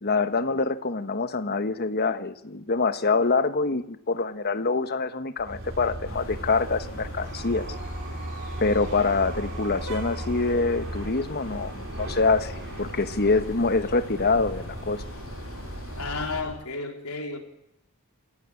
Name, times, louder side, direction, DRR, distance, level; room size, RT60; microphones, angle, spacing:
voice 1, 0.0-7.7 8.6-12.5 12.8-15.0, left 3 dB, 50° left, 10 dB, 1.3 m, -25 dB
sound 1, 5.4-16.6, right 1 dB, 60° right, 4.6 m, -37 dB
sound 2, 6.0-16.4, left 2 dB, 65° left, 3.3 m, -44 dB
sound 3, 7.2-10.7, right 5 dB, 40° right, 5.4 m, -44 dB
voice 2, 16.0-17.4, left 3 dB, 85° left, 3 dB, 3.8 m, -33 dB
27.0 x 16.0 x 8.5 m, 0.85 s
head